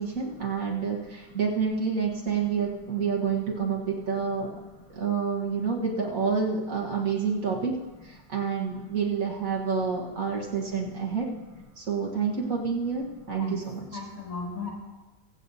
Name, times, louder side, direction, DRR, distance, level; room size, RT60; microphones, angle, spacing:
voice 1, 0.0-4.5 4.9-7.7 8.0-11.3 11.8-13.9, right 5 dB, 55° right, -2 dB, 1.8 m, -28 dB
voice 2, 11.3-11.6 13.0-13.6 13.9-14.7, left 4 dB, 55° left, -4 dB, 2.7 m, -39 dB
23.0 x 8.5 x 2.7 m, 1.1 s
omnidirectional pair, 1.8 m